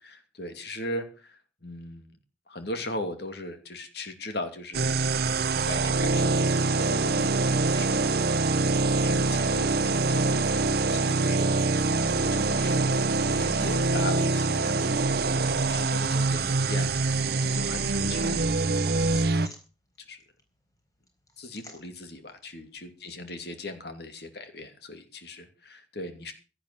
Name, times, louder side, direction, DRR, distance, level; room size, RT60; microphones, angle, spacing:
voice 1, 0.0-2.1 2.5-11.8 12.1-18.5 18.9-19.3 20.1-20.2 21.4-26.3, left 1 dB, 55° left, 8 dB, 2.7 m, -39 dB
sound 1, 4.7-19.5, right 3 dB, 55° right, 0.8 m, -25 dB
sound 2, 16.9-23.7, left 1 dB, 20° left, 4.4 m, -56 dB
17.0 x 8.8 x 6.8 m, 0.36 s
head